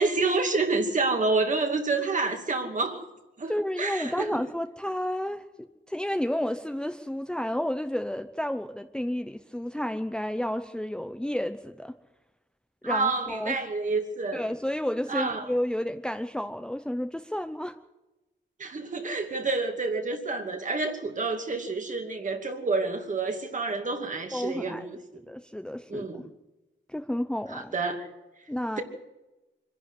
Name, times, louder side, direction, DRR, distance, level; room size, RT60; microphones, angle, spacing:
voice 1, 0.0-3.1 3.4-4.3 12.8-14.4 15.1-15.5 18.6-25.0 25.9-26.2 27.5-28.1 28.8-28.9, right 3 dB, 40° right, 4 dB, 2.6 m, -28 dB
voice 2, 3.5-12.0 12.8-13.6 14.3-17.8 24.3-24.9 25.3-26.3 26.9-27.7 28.5-28.8, left 1 dB, 5° left, 8 dB, 0.8 m, -31 dB
25.5 x 11.0 x 9.7 m, 1.0 s
wide cardioid pair, 145°, 20 cm